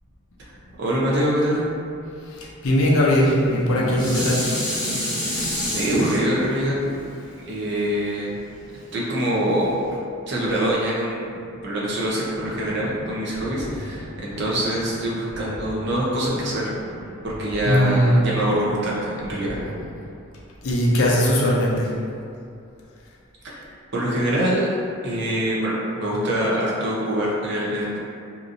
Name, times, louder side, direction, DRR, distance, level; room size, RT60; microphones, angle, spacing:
voice 1, 0.8-1.6 5.7-6.9 7.5-8.3 8.9-9.7 10.3-16.7 17.2-19.6 23.4-23.5 23.9-24.7 25.0-28.0, right 1 dB, 50° right, -6 dB, 0.6 m, -24 dB
voice 2, 2.3-4.6 17.6-18.2 20.6-21.9, equal, 75° left, -4 dB, 0.5 m, -19 dB
Dishes pots and pans, 3.4-8.6 9.2-9.3, equal, 20° left, 0.7 m, -27 dB
sound 1, 12.3-20.2, equal, 70° right, 1.4 m, -38 dB
2.8 x 2.5 x 2.6 m, 2.5 s
head